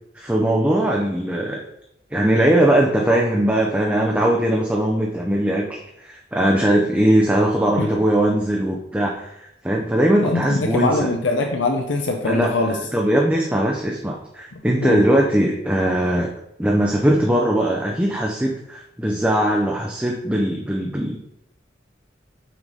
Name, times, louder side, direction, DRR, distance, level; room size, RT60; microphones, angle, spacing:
voice 1, 0.2-1.6 2.1-11.1 12.2-12.5 12.9-16.3 16.6-21.2, right 1 dB, 5° right, -1 dB, 0.5 m, -20 dB
voice 2, 10.2-12.8 14.8-15.0, left 2 dB, 75° left, 2 dB, 0.7 m, -22 dB
6.0 x 3.9 x 5.4 m, 0.82 s
head